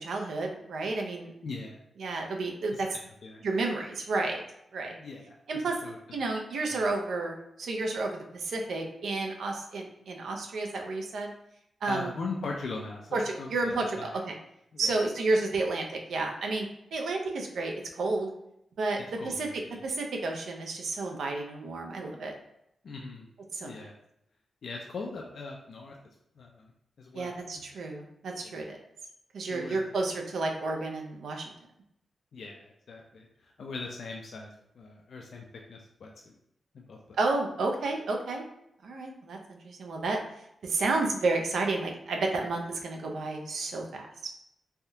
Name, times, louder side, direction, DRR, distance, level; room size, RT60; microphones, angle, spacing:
voice 1, 0.0-1.3 2.0-3.0 3.4-4.4 4.7-4.9 5.5-5.8 6.1-11.3 11.8-12.1 13.1-14.3 14.8-18.3 18.8-22.3 23.5-23.7 27.1-28.8 29.3-31.5 37.2-38.4 38.8-40.2 40.6-44.3, right 3 dB, 85° right, 2 dB, 0.5 m, -31 dB
voice 2, 1.4-1.8 2.7-2.8 3.2-3.4 4.9-5.4 5.8-6.0 6.7-6.9 11.8-14.2 14.7-14.9 19.2-19.8 22.8-23.3 23.6-23.9 24.6-26.0 26.4-26.7 27.0-27.6 28.4-28.6 29.5-29.9 32.3-34.5 34.8-36.3 36.7-37.2, left 3 dB, 70° left, 0 dB, 0.4 m, -40 dB
3.4 x 2.3 x 2.7 m, 0.77 s
cardioid pair, 65°, 0 cm